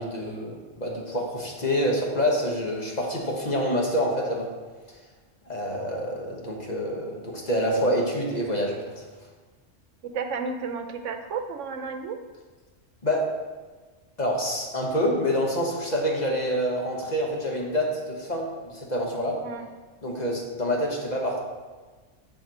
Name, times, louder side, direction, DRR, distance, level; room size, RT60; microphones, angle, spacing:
voice 1, 0.0-4.5 5.5-9.0 13.0-13.3 14.2-19.4 20.0-21.4, equal, 35° left, -1 dB, 1.2 m, -27 dB
voice 2, 10.0-12.2 19.4-19.7, right 5 dB, 80° right, 7 dB, 1.0 m, -32 dB
14.0 x 4.6 x 2.9 m, 1.3 s
omnidirectional pair, 1.3 m